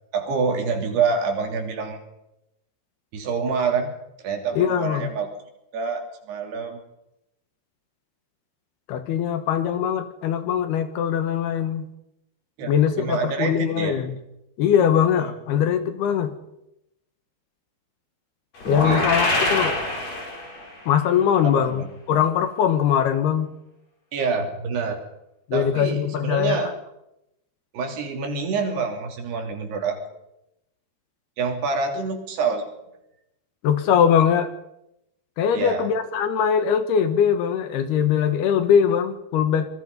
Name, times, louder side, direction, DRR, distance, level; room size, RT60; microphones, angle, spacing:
voice 1, 0.1-2.0 3.1-3.9 4.2-5.3 5.7-6.8 12.6-14.0 18.8-19.1 21.4-21.9 24.1-25.0 25.5-26.7 27.7-30.0 31.4-32.7 35.5-35.9, right 5 dB, 70° right, 3 dB, 4.9 m, -26 dB
voice 2, 4.6-5.1 8.9-11.8 12.7-14.1 14.6-16.3 18.7-19.8 20.9-23.5 25.5-26.7 33.6-34.5 35.4-39.7, left 8 dB, 70° left, 9 dB, 3.2 m, -21 dB
sound 1, 18.6-20.8, left 2 dB, 40° left, 5.5 m, -24 dB
27.0 x 21.5 x 5.4 m, 0.86 s
omnidirectional pair, 5.0 m